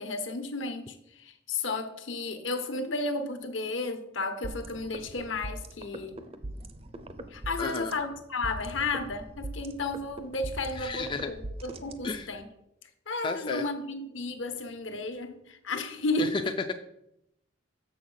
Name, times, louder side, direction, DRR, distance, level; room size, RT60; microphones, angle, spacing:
voice 1, 0.0-6.2 7.3-12.5 13.1-16.4, left 3 dB, 75° left, 6 dB, 1.1 m, -33 dB
sound 1, 4.4-12.4, right 1 dB, 30° right, 0.5 m, -41 dB
voice 2, 7.6-7.9 10.8-11.3 12.0-12.3 13.2-13.6 16.2-16.7, left 3 dB, 25° left, 6 dB, 0.3 m, -32 dB
6.9 x 6.3 x 5.6 m, 0.82 s
head